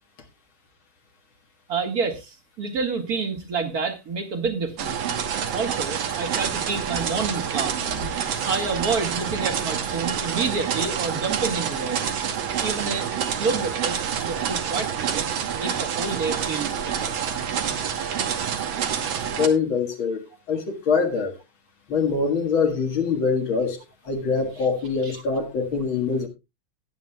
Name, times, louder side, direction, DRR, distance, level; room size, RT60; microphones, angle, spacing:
voice 1, 1.7-5.0 5.5-8.1 8.5-12.0 12.6-17.1 25.0-25.2, right 4 dB, 50° right, 2.1 m, -29 dB
sound 1, 4.8-19.5, right 8 dB, 75° right, 2.0 m, -27 dB
voice 2, 19.3-21.4 21.9-23.8 24.1-26.3, left 5 dB, 75° left, 2.5 m, -24 dB
17.0 x 9.3 x 2.3 m
omnidirectional pair, 2.2 m